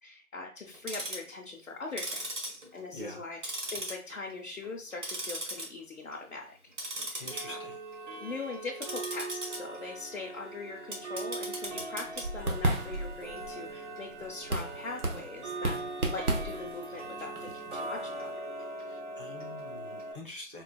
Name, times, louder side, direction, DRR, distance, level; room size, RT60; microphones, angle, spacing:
voice 1, 0.0-6.6 7.1-7.6 8.2-15.8 16.1-18.3, left 3 dB, 65° left, -1 dB, 0.6 m, -41 dB
Tick-tock, 0.7-1.3 1.9-3.2 3.4-4.3 4.6-5.7 6.0-6.3 6.7-20.1, right 2 dB, 55° right, 0.9 m, -39 dB
voice 2, 2.9-3.3 7.1-7.8 18.9-20.6, left 1 dB, 40° right, -1 dB, 0.5 m, -45 dB
sound 1, 11.6-18.3, right 2 dB, 85° right, 0.9 m, -34 dB
3.8 x 2.0 x 2.2 m, 0.39 s
figure-of-eight pair, 170°, 43 cm